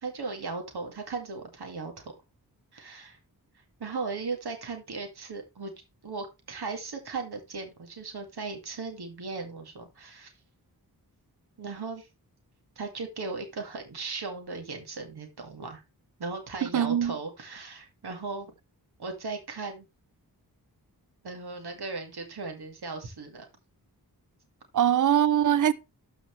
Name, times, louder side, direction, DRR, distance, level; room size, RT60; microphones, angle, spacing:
voice 1, 0.0-2.0 2.7-3.2 3.8-5.7 6.0-10.3 11.6-12.1 12.8-15.8 16.2-18.5 19.0-19.9 21.2-23.5, right 4 dB, 85° right, 2.4 m, -37 dB
voice 2, 16.6-17.1 24.7-25.7, right 10 dB, 55° right, 0.6 m, -22 dB
13.0 x 5.0 x 3.3 m
wide cardioid pair, 85°, 38 cm